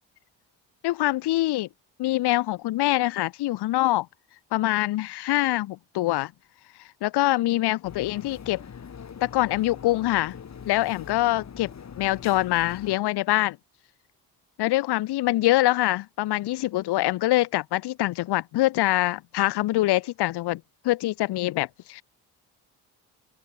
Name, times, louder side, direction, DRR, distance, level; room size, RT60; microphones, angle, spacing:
voice 1, 0.8-1.7 2.0-4.1 4.5-6.3 7.0-8.6 9.2-10.3 10.7-11.7 12.0-13.6 14.6-22.0, left 17 dB, 60° left, 0.6 m, -24 dB
sound 1, 7.8-13.0, left 7 dB, 35° left, 1.3 m, -42 dB
open air
supercardioid pair, 55°, 45 cm